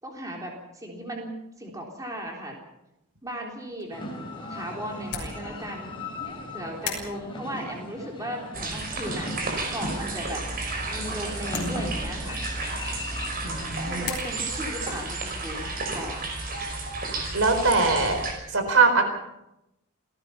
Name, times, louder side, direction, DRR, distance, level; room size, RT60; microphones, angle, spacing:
voice 1, 0.0-1.3 1.6-2.6 3.2-4.0 4.5-6.0 6.5-9.3 9.7-10.4 10.9-12.4 13.9-16.2, equal, 15° right, 0 dB, 3.7 m, -36 dB
sound 1, 3.6-14.1, left 7 dB, 50° left, 6.5 m, -42 dB
sound 2, 3.9-14.0, left 1 dB, 20° left, 5.0 m, -38 dB
sound 3, 8.5-18.3, right 3 dB, 40° right, 5.5 m, -32 dB
voice 2, 13.4-14.1 17.3-18.2 18.5-19.0, right 3 dB, 65° right, 6 dB, 4.5 m, -22 dB
28.0 x 17.5 x 5.8 m, 0.86 s
head